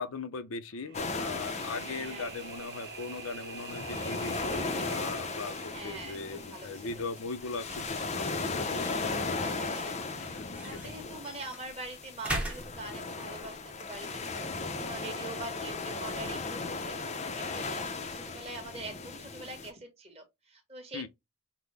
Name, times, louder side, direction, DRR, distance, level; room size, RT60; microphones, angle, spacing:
voice 1, 0.0-4.4 4.8-9.5 10.4-10.8 20.9-21.1, left 4 dB, 75° left, 0.6 m, -39 dB
sound 1, 0.7-7.8, right 6 dB, 50° right, 0.6 m, -47 dB
sound 2, 0.9-19.7, left 3 dB, 30° left, 0.5 m, -37 dB
voice 2, 1.8-2.7 5.7-6.2 6.5-7.1 9.4-10.0 10.6-21.1, right 2 dB, 30° right, 1.3 m, -44 dB
sound 3, 5.8-18.2, right 1 dB, 5° right, 0.8 m, -45 dB
5.9 x 2.1 x 3.4 m
head